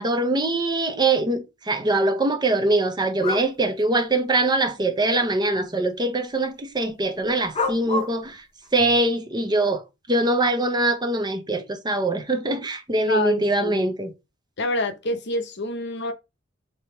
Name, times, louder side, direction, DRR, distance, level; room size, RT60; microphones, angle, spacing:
voice 1, 0.0-8.4 8.7-9.8 10.1-14.1, right 2 dB, 20° right, 0.7 m, -23 dB
sound 1, 3.2-3.5 4.7-4.8 7.5-8.1, left 2 dB, 30° left, 0.7 m, -27 dB
voice 2, 13.1-13.8 14.6-16.1, left 2 dB, 60° left, 0.8 m, -27 dB
3.5 x 2.8 x 4.4 m
head